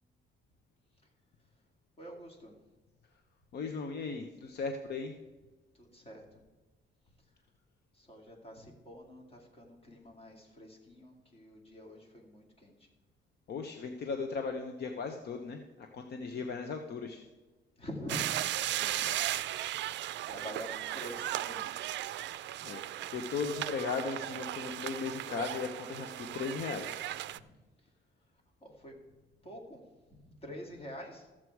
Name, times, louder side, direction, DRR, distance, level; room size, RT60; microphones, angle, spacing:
voice 1, 2.0-2.6 5.7-6.4 7.1-7.2 7.9-12.9 17.8-18.2 18.7-19.4 20.0-21.7 27.3-27.4 28.6-29.0 29.4-29.8 30.1-31.3, equal, 30° left, 1 dB, 2.3 m, -47 dB
voice 2, 3.5-5.1 13.5-17.2 22.6-22.8 23.1-27.0, left 5 dB, 55° left, 5 dB, 0.8 m, -37 dB
sound 1, 18.1-27.4, right 13 dB, 65° right, 0.4 m, -36 dB
14.0 x 7.5 x 4.7 m, 1.2 s
cardioid pair, 150°, 20 cm